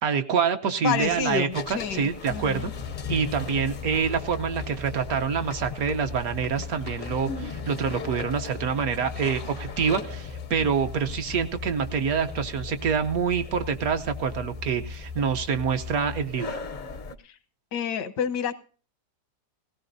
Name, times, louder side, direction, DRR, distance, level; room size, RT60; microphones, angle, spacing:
voice 1, 0.0-2.7 3.1-16.6, right 6 dB, 65° right, 7 dB, 1.2 m, -26 dB
voice 2, 0.8-2.7 17.2-17.3 17.7-18.6, left 7 dB, 90° left, 10 dB, 1.6 m, -29 dB
sound 1, 0.9-17.1, left 5 dB, 55° left, 0.5 m, -39 dB
sound 2, 2.3-16.3, left 5 dB, 40° right, 0.6 m, -39 dB
17.5 x 17.0 x 2.6 m, 0.39 s
omnidirectional pair, 1.8 m